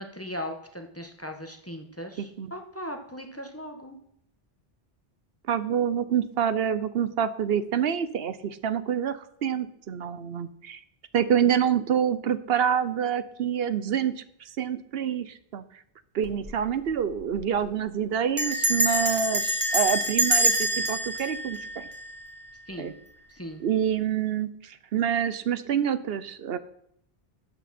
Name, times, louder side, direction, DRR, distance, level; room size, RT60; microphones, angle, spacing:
voice 1, 0.0-4.0 22.7-22.9 23.3-23.6, equal, 15° left, 4 dB, 1.2 m, -38 dB
voice 2, 2.2-2.5 5.5-10.8 11.1-14.1 14.6-15.6 16.1-21.9 22.8-22.9 23.6-26.6, right 8 dB, 70° right, 14 dB, 0.9 m, -27 dB
Bell, 16.2-16.6 16.9-17.0 17.2-17.6 18.4-22.5, right 1 dB, 30° right, 1.9 m, -26 dB
12.0 x 8.3 x 4.2 m, 0.72 s
omnidirectional pair, 1.1 m